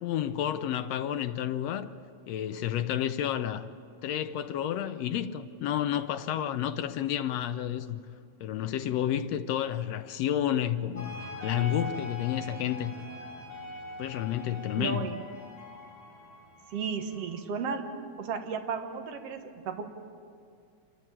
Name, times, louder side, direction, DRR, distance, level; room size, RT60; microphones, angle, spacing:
voice 1, 0.0-1.9 2.3-3.7 4.0-8.0 8.4-12.9 14.0-15.1, left 11 dB, 75° left, 1.6 m, -30 dB
sound 1, 10.9-17.4, left 1 dB, 35° left, 4.9 m, -42 dB
voice 2, 14.8-15.2 16.7-17.8 18.2-19.9, right 6 dB, 60° right, 2.3 m, -34 dB
27.5 x 14.0 x 8.7 m
omnidirectional pair, 3.5 m